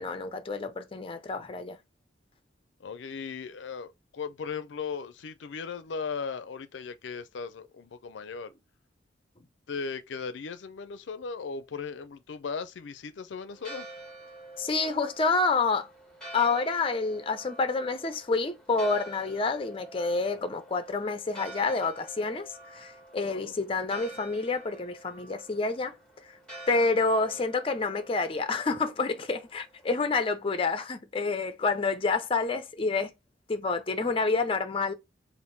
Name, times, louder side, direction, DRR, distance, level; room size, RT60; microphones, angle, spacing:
voice 1, 0.0-1.8 14.6-15.9 16.3-25.9 26.7-33.1 33.5-34.9, left 3 dB, 30° left, 0.5 m, -28 dB
voice 2, 2.8-8.5 9.7-13.9 23.2-23.5, left 5 dB, 80° left, 0.4 m, -37 dB
Church bell, 13.5-30.1, right 2 dB, 5° left, 1.8 m, -48 dB
3.6 x 2.5 x 3.9 m
head